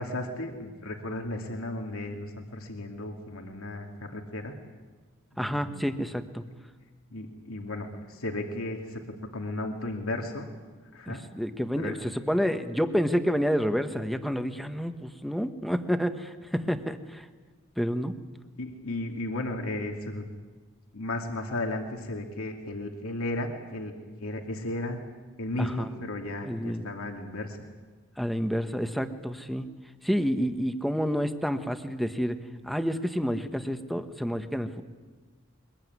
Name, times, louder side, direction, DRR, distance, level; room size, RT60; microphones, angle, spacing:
voice 1, 0.0-4.6 5.3-5.9 7.1-9.0 9.3-10.5 10.9-11.2 11.8-11.9 18.6-20.2 20.9-25.0 25.4-27.6, left 1 dB, 90° left, 3 dB, 2.7 m, -34 dB
voice 2, 5.4-6.4 11.1-17.3 17.8-18.1 25.6-25.9 26.4-26.9 28.2-29.7 30.0-32.4 32.6-34.8, equal, ahead, 8 dB, 1.2 m, -29 dB
23.0 x 22.0 x 9.6 m, 1.4 s
head